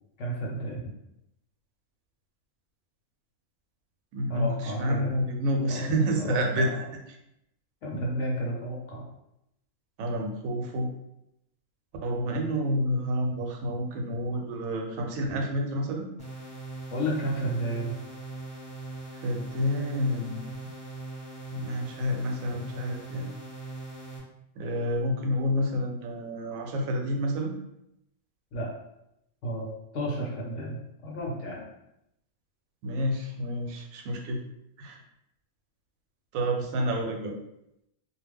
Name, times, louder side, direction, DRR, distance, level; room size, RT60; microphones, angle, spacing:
voice 1, 0.2-0.8 4.3-5.1 5.7-6.8 7.8-9.0 16.9-17.9 28.5-28.7 29.4-29.7 29.9-30.8 31.0-31.7, right 1 dB, 65° left, -3 dB, 0.9 m, -32 dB
voice 2, 4.1-6.7 10.0-10.9 12.0-16.1 19.2-20.4 21.5-23.3 24.6-27.5 32.8-34.4 34.8-35.0 36.3-37.3, equal, 80° right, 2 dB, 1.0 m, -29 dB
sound 1, 16.2-24.2, right 3 dB, 5° left, 0.9 m, -40 dB
2.4 x 2.1 x 3.4 m, 0.82 s
omnidirectional pair, 1.4 m